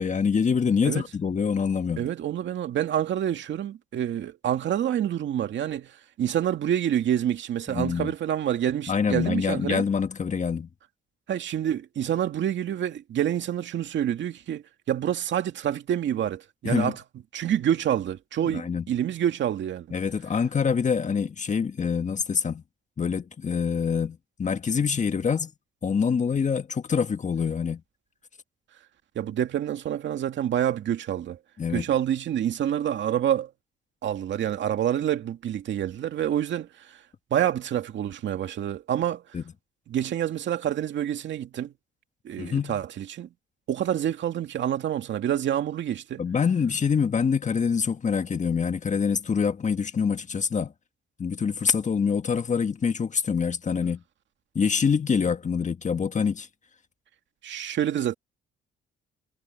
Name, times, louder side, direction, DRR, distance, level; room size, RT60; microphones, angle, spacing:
voice 1, 0.0-2.1 7.7-8.1 8.9-10.7 16.6-16.9 18.4-18.8 19.9-22.6 23.0-25.5 25.8-27.8 31.6-31.8 39.3-39.4 42.4-42.8 46.2-50.7 51.2-54.0 54.5-56.5, left 6 dB, 40° left, 1.6 m, -25 dB
voice 2, 2.0-5.9 6.2-9.8 11.3-17.0 17.3-19.9 29.2-31.4 31.7-33.5 34.0-37.0 37.3-39.2 39.9-41.7 42.2-43.3 43.7-46.2 57.4-58.1, right 10 dB, 70° right, 2.3 m, -27 dB
cardioid pair, 90°, 20 cm